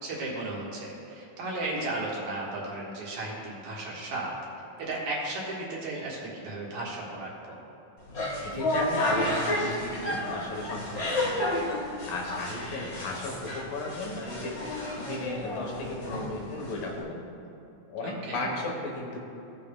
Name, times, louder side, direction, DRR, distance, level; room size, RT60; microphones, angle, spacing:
voice 1, 0.0-4.3 4.8-7.3 18.0-18.5, right 2 dB, 65° right, -5 dB, 2.7 m, -34 dB
sound 1, 8.0-17.0, left 1 dB, 60° left, 0.9 m, -32 dB
voice 2, 8.4-11.6 12.1-14.5 15.0-17.2 17.9-19.2, left 2 dB, 75° left, -1 dB, 2.7 m, -35 dB
16.0 x 6.8 x 2.2 m, 2.9 s
omnidirectional pair, 4.1 m